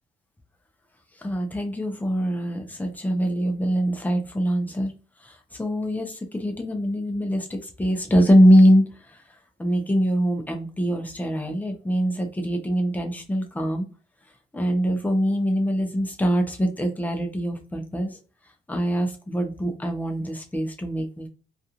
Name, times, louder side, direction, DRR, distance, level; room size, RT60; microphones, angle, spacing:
voice 1, 1.2-4.9 5.2-8.8 9.6-13.9 14.5-18.2 18.7-21.3, equal, 10° left, 3 dB, 0.6 m, -23 dB
2.4 x 2.3 x 2.9 m, 0.35 s
cardioid pair, 90°, 20 cm